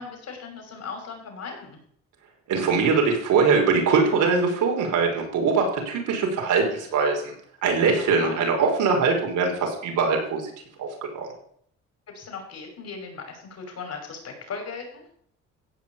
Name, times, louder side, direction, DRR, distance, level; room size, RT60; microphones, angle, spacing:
voice 1, 0.0-1.8 8.0-8.4 12.1-15.0, left 5 dB, 55° left, 3 dB, 6.3 m, -37 dB
voice 2, 2.5-7.3 7.6-10.5 10.8-10.9 11.1-11.3, right 5 dB, 85° right, 2 dB, 5.0 m, -22 dB
15.5 x 6.3 x 8.7 m, 0.65 s
cardioid pair, 90°, 30 cm